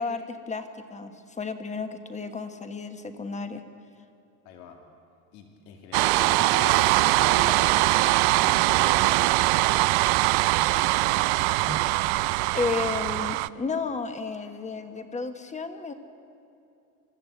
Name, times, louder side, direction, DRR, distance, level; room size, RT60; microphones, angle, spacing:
voice 1, 0.0-3.6 11.7-11.8 12.5-15.9, left 4 dB, 15° left, 8 dB, 1.3 m, -32 dB
voice 2, 4.4-4.8 5.3-9.8 10.4-10.9, left 6 dB, 85° left, 3 dB, 2.7 m, -42 dB
sound 1, 5.9-13.5, right 20 dB, 55° right, 0.5 m, -22 dB
24.5 x 13.5 x 8.1 m, 2.6 s
supercardioid pair, 125°, 48 cm